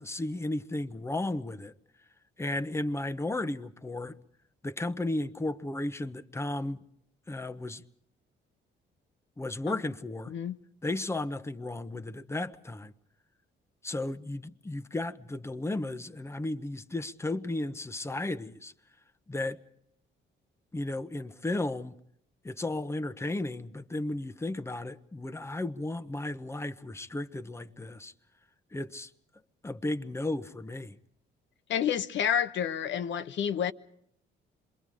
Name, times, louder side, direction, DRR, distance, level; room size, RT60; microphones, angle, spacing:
voice 1, 0.0-1.7 2.4-4.1 4.6-6.8 7.3-7.8 9.4-10.3 10.8-12.9 13.8-18.7 19.3-19.6 20.7-21.9 22.4-28.1 28.7-29.1 29.6-31.0, left 2 dB, 15° left, 1.0 m, -34 dB
voice 2, 31.7-33.7, left 9 dB, 70° left, 1.0 m, -29 dB
27.0 x 23.0 x 5.0 m
cardioid pair, 90°, 20 cm